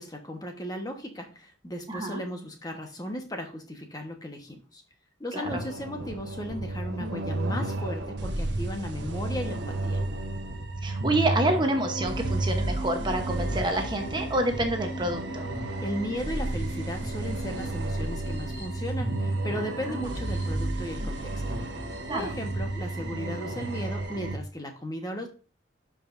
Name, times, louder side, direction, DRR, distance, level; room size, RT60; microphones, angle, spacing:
voice 1, 0.0-4.8 5.2-10.0 15.8-21.4 22.1-25.3, equal, 20° left, 1.2 m, -36 dB
voice 2, 1.9-2.2 5.3-5.6 10.8-15.5 19.6-20.1 22.1-22.3, right 1 dB, 25° right, 0.9 m, -28 dB
sound 1, 5.4-24.4, right 2 dB, 65° right, 1.2 m, -32 dB
sound 2, 11.3-23.9, right 1 dB, 50° left, 2.8 m, -42 dB
12.0 x 5.1 x 2.6 m
head